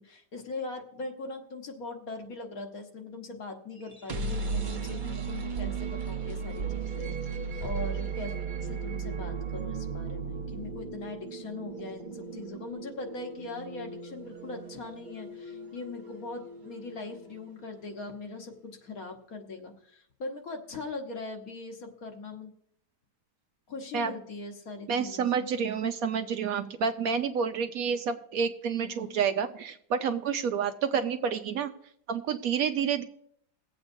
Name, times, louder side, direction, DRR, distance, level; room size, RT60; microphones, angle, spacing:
voice 1, 0.0-8.4 8.6-22.5 23.7-25.5 28.8-29.2, left 3 dB, 60° left, 3 dB, 1.6 m, -41 dB
sound 1, 3.8-17.7, right 5 dB, 45° right, 0.7 m, -36 dB
voice 2, 24.9-31.7 32.1-33.0, right 6 dB, 70° right, 8 dB, 0.9 m, -29 dB
20.0 x 7.9 x 2.6 m, 0.70 s
omnidirectional pair, 1.8 m